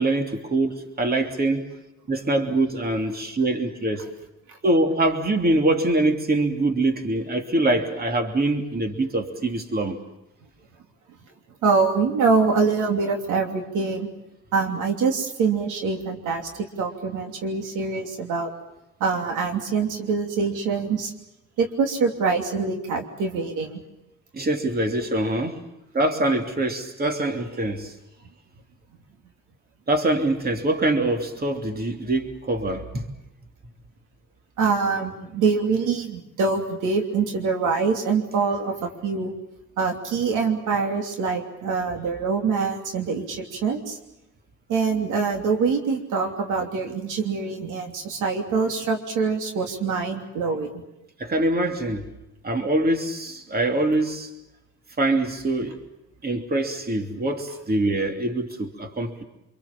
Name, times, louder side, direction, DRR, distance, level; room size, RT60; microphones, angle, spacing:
voice 1, 0.0-1.7 2.1-4.1 4.6-10.0 24.3-25.6 25.9-27.9 29.9-33.0 51.2-52.1 52.4-54.3 55.0-55.8 56.2-59.2, right 2 dB, 30° right, 4 dB, 3.1 m, -24 dB
voice 2, 11.6-14.1 14.5-16.5 16.8-18.5 19.0-21.1 21.6-23.8 34.6-39.3 39.8-44.0 44.7-50.7, right 5 dB, 85° right, 3 dB, 3.0 m, -24 dB
26.0 x 23.5 x 7.3 m, 0.92 s
cardioid pair, 90°, 30 cm